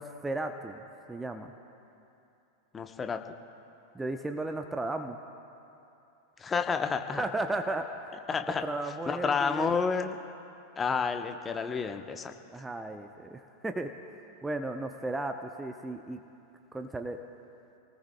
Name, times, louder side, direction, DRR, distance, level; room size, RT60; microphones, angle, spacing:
voice 1, 0.0-1.5 3.9-5.2 7.2-8.2 8.6-9.7 12.5-13.9 14.4-16.2 16.7-17.2, right 2 dB, 10° right, 6 dB, 0.7 m, -35 dB
voice 2, 2.7-3.2 6.4-7.2 8.3-8.6 9.1-10.2 10.8-12.3, left 5 dB, 20° left, 6 dB, 0.9 m, -30 dB
29.0 x 19.0 x 2.2 m, 2.8 s
figure-of-eight pair, 90°, 0 cm